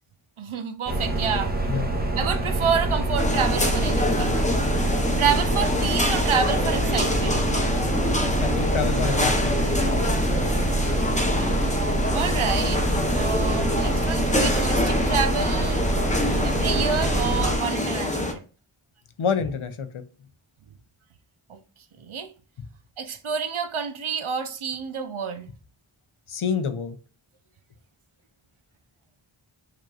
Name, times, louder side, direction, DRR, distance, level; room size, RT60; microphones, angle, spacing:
voice 1, 0.4-1.5 2.2-4.4 5.1-7.4 10.9-11.0 12.1-12.8 13.1-15.8 16.4-18.4 21.5-21.6 22.0-22.3 23.0-25.5, right 6 dB, 75° right, 0.7 m, -28 dB
sound 1, 0.9-17.6, right 2 dB, 20° right, 0.8 m, -25 dB
sound 2, 3.2-18.3, left 1 dB, 15° left, 0.7 m, -26 dB
voice 2, 8.4-9.5 19.2-20.0 26.3-27.0, left 6 dB, 75° left, 0.7 m, -27 dB
5.0 x 3.0 x 2.4 m
wide cardioid pair, 55°, 50 cm